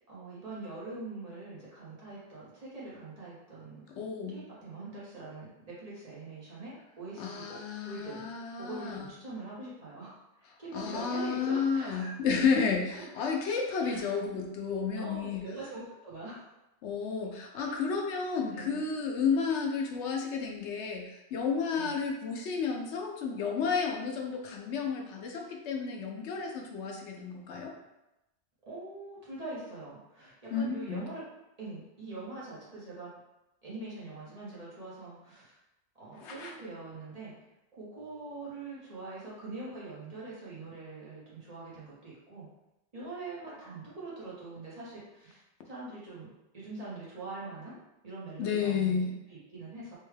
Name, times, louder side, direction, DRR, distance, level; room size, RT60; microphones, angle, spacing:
voice 1, 0.1-8.3 8.6-12.1 12.9-13.1 13.8-14.1 15.0-16.4 17.6-17.8 18.5-18.8 21.7-22.0 28.7-31.2 31.6-33.1 33.6-35.6 36.0-37.3 37.8-42.5 42.9-47.8 48.0-49.0 49.3-50.0, right 3 dB, 35° right, -7 dB, 1.0 m, -43 dB
voice 2, 4.0-4.4 7.2-9.1 10.7-15.4 16.8-27.7 30.5-31.0 36.2-36.5 48.4-49.1, left 5 dB, 90° left, 1 dB, 0.9 m, -32 dB
3.4 x 2.2 x 3.2 m, 0.92 s
omnidirectional pair, 1.1 m